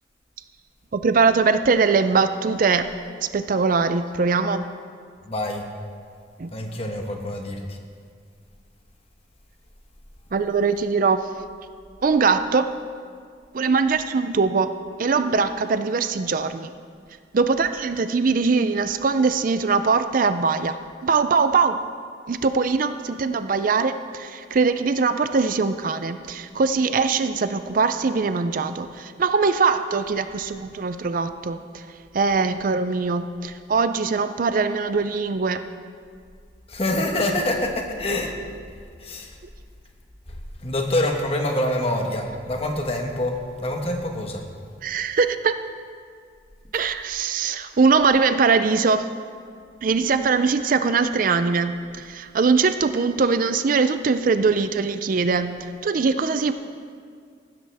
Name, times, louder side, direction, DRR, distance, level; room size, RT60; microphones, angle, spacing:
voice 1, 0.9-2.9 3.3-4.7 6.4-6.5 10.3-11.3 12.0-12.7 13.5-14.7 15.0-16.7 17.3-20.8 21.0-21.8 22.3-31.6 32.1-35.6 44.8-45.5 46.7-49.0 49.8-55.6 55.8-56.5, right 4 dB, 45° right, 10 dB, 0.4 m, -21 dB
voice 2, 5.2-5.7 6.5-7.8 36.7-38.4 39.0-39.3 40.6-44.4, left 1 dB, 35° left, 2 dB, 1.3 m, -26 dB
15.5 x 12.5 x 3.5 m, 2.1 s
head